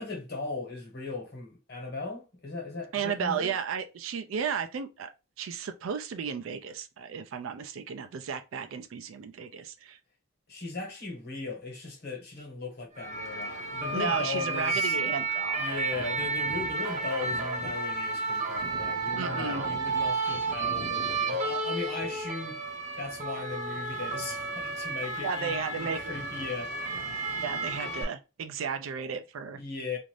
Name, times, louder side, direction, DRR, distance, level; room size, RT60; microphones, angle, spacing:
voice 1, 0.0-3.6 10.5-15.0 15.5-26.7 29.6-30.0, left 3 dB, 50° left, 1.2 m, -38 dB
voice 2, 2.9-5.1 5.4-10.0 13.9-15.7 19.2-19.7 25.2-26.1 27.4-29.6, right 7 dB, 75° right, 0.4 m, -34 dB
sound 1, 13.0-28.0, right 3 dB, 35° right, 0.6 m, -32 dB
2.5 x 2.5 x 3.1 m
head